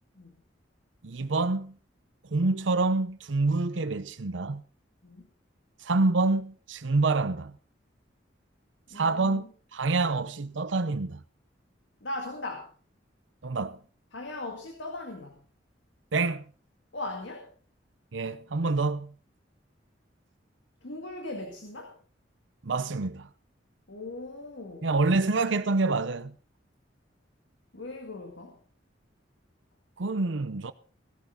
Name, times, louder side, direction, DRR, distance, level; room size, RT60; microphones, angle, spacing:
voice 1, 1.0-1.7 2.3-4.6 5.8-7.6 8.9-9.4 9.7-11.2 13.4-13.8 16.1-16.4 18.1-19.1 22.6-23.3 24.8-26.3 30.0-30.7, right 3 dB, 80° right, 0.8 m, -27 dB
voice 2, 8.9-9.5 12.0-12.7 14.1-15.4 16.9-17.5 20.8-22.0 23.9-24.9 27.7-28.6, left 2 dB, 75° left, 2.0 m, -39 dB
17.0 x 12.5 x 3.9 m
head